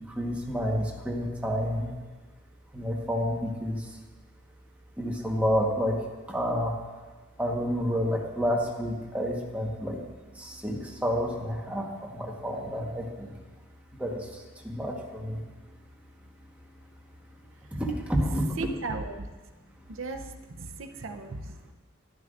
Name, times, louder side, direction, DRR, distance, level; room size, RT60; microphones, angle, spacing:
voice 1, 0.1-1.9 2.7-3.9 5.0-6.0 6.3-6.7 7.4-10.0 10.4-13.3 13.9-15.4 17.7-18.6, equal, 5° right, -1 dB, 1.3 m, -29 dB
voice 2, 18.6-19.3 19.9-21.7, right 3 dB, 75° right, 7 dB, 0.7 m, -37 dB
11.0 x 10.5 x 2.5 m, 1.3 s
head